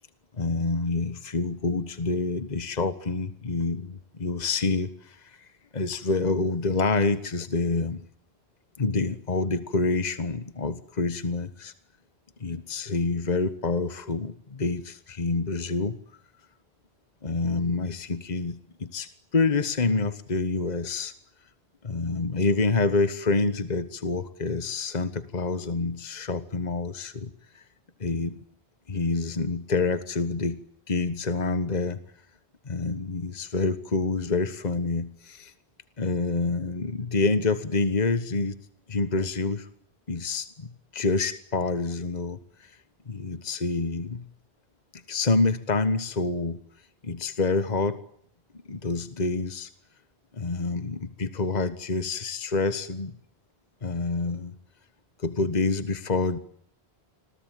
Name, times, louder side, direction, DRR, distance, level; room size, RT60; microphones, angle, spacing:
voice 1, 0.3-5.5 5.7-8.0 8.8-11.7 12.4-16.0 17.2-21.1 21.8-27.6 28.0-28.4 28.9-30.6 30.9-32.0 32.6-35.5 36.0-38.6 38.9-39.7 40.1-42.7 43.1-44.3 44.9-46.6 47.0-48.0 48.6-49.7 50.3-53.1 53.8-54.6 55.2-56.4, left 3 dB, 40° left, 12 dB, 1.5 m, -27 dB
28.0 x 22.0 x 9.3 m, 0.67 s
omnidirectional pair, 1.1 m